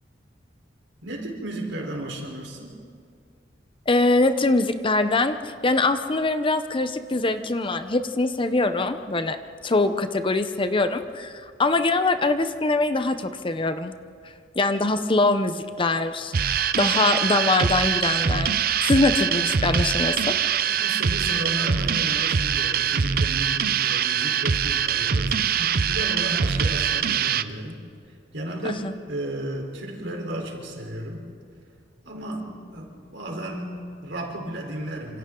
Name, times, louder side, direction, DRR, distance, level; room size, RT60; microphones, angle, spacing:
voice 1, 1.0-2.7 20.7-27.7 28.3-31.2 32.0-35.2, right 1 dB, 80° right, 1 dB, 4.0 m, -34 dB
voice 2, 3.9-9.4 9.6-13.9 14.6-18.6 18.8-20.4 28.6-28.9, left 2 dB, 30° left, 9 dB, 0.8 m, -23 dB
sound 1, 16.3-27.4, right 7 dB, 55° right, 0.6 m, -23 dB
27.5 x 26.5 x 3.8 m, 2.2 s
head